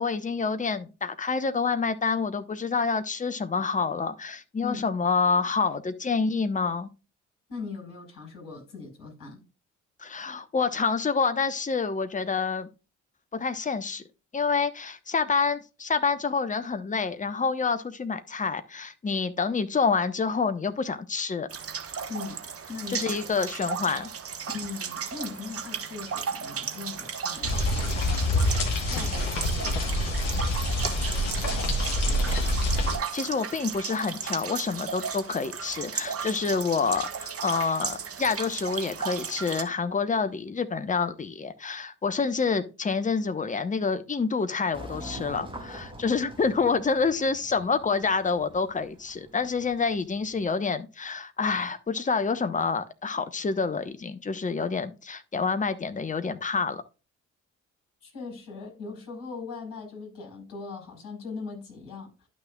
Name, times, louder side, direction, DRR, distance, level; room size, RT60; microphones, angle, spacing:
voice 1, 0.0-6.9 10.0-12.7 13.3-14.0 14.3-21.5 22.9-24.1 33.1-56.8, left 5 dB, 20° left, 1.0 m, -27 dB
voice 2, 4.6-4.9 7.5-9.4 22.1-22.4 22.7-23.3 24.5-28.5 28.9-30.6 30.9-32.3 58.0-62.3, left 4 dB, 55° left, 4.5 m, -40 dB
sound 1, 21.5-39.6, right 6 dB, 40° right, 1.3 m, -35 dB
sound 2, 27.4-33.0, left 1 dB, 75° left, 1.4 m, -26 dB
sound 3, 44.7-50.4, equal, 15° right, 2.8 m, -44 dB
11.5 x 6.2 x 2.4 m
figure-of-eight pair, 45°, 38 cm